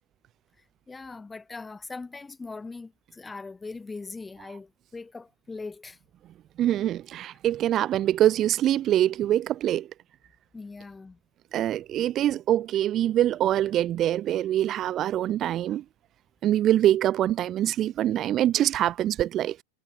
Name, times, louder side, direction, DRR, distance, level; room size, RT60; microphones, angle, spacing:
voice 1, 0.9-6.0 10.5-11.2, left 3 dB, 10° left, 2.7 m, -40 dB
voice 2, 6.6-9.9 11.5-15.8 16.4-19.6, right 12 dB, 30° right, 0.3 m, -24 dB
figure-of-eight pair, 90°, 0 cm